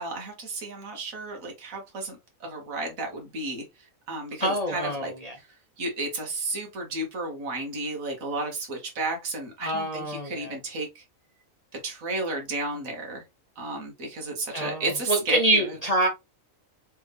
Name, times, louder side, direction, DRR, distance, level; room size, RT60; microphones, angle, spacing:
voice 1, 0.0-5.1 5.4-5.5 5.8-11.0 11.8-13.2 13.6-15.8, right 2 dB, 90° right, 1.6 m, -33 dB
voice 2, 4.4-5.3 9.6-10.5 14.5-16.1, right 1 dB, 40° left, 0.6 m, -26 dB
3.4 x 3.4 x 3.3 m
omnidirectional pair, 1.4 m